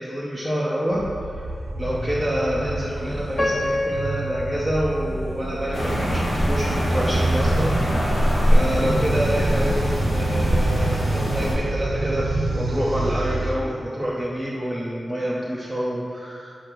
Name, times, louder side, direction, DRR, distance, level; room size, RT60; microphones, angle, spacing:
voice 1, 0.0-1.4 1.8-8.2 8.5-16.6, equal, ahead, -6 dB, 0.9 m, -27 dB
sound 1, 0.9-13.5, right 2 dB, 55° right, 0.7 m, -29 dB
Piano, 3.4-6.4 6.9-7.0 7.7-7.9, left 1 dB, 60° left, 1.7 m, -29 dB
sound 2, 5.7-11.5, equal, 45° left, 1.8 m, -22 dB
8.6 x 5.1 x 4.6 m, 2.3 s
wide cardioid pair, 105°, 0 cm